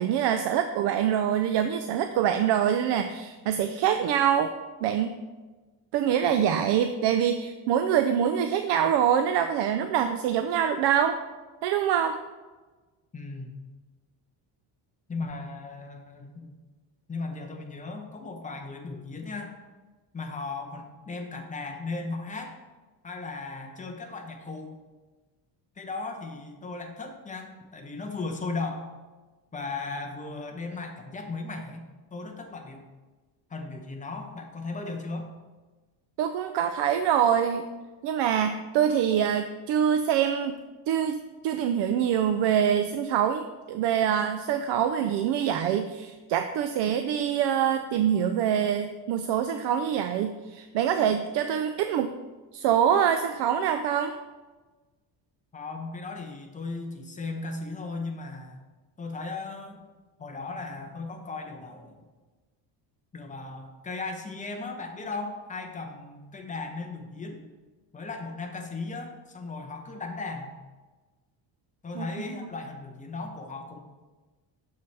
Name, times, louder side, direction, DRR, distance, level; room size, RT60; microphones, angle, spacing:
voice 1, 0.0-4.5 4.8-5.1 5.9-11.2 11.6-12.2 36.2-37.6 38.0-40.5 40.9-52.1 52.5-54.2 72.0-72.1, right 9 dB, 65° right, 8 dB, 0.5 m, -25 dB
voice 2, 13.1-13.5 15.1-16.5 17.1-19.6 20.1-22.5 23.0-24.7 25.8-28.9 29.5-32.8 33.5-35.3 55.5-58.6 59.0-59.9 60.2-62.0 63.1-67.4 67.9-70.5 71.8-73.8, left 3 dB, 15° left, 3 dB, 0.7 m, -36 dB
6.8 x 6.7 x 3.3 m, 1.3 s
cardioid pair, 155°, 45 cm